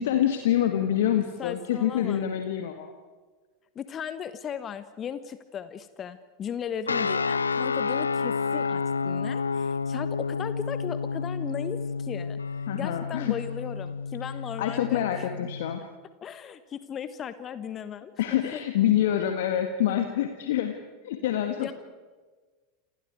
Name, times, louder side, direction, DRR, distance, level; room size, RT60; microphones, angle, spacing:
voice 1, 0.0-2.9 12.7-13.4 14.6-15.8 18.2-21.7, left 11 dB, 60° left, 6 dB, 1.9 m, -26 dB
voice 2, 1.4-2.2 3.7-12.4 12.7-15.1 15.4-15.5 16.2-18.6 21.6-21.7, left 8 dB, 30° left, 12 dB, 1.3 m, -37 dB
sound 1, 6.9-15.8, left 5 dB, 80° left, 0.7 m, -30 dB
28.0 x 28.0 x 4.8 m, 1.3 s
figure-of-eight pair, 85°, 0 cm